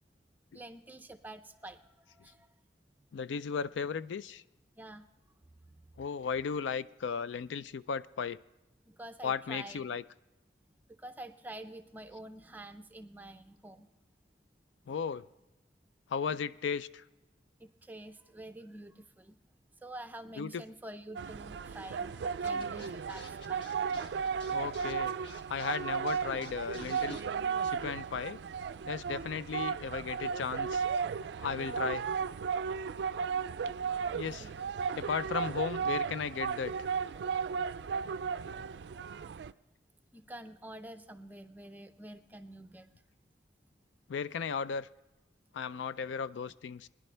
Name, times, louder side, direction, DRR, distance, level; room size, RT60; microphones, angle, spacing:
voice 1, 0.5-2.5 3.0-3.1 4.8-5.1 6.0-6.1 8.8-9.8 11.0-13.9 17.6-19.4 19.8-23.7 34.4-34.6 40.1-42.9, right 1 dB, 10° right, 9 dB, 0.5 m, -48 dB
voice 2, 3.1-4.4 6.0-8.4 9.2-10.0 14.9-15.2 16.1-17.0 20.4-20.6 24.5-25.1 25.5-27.2 27.6-28.4 28.9-30.8 31.4-32.0 34.1-34.5 35.0-36.7 44.1-44.9 45.5-46.9, left 6 dB, 85° left, 16 dB, 0.4 m, -35 dB
sound 1, 21.2-39.5, right 6 dB, 70° right, 0.3 m, -35 dB
Scratching (performance technique), 22.4-27.2, left 1 dB, 70° left, 1.6 m, -50 dB
20.5 x 10.5 x 3.3 m, 0.98 s
head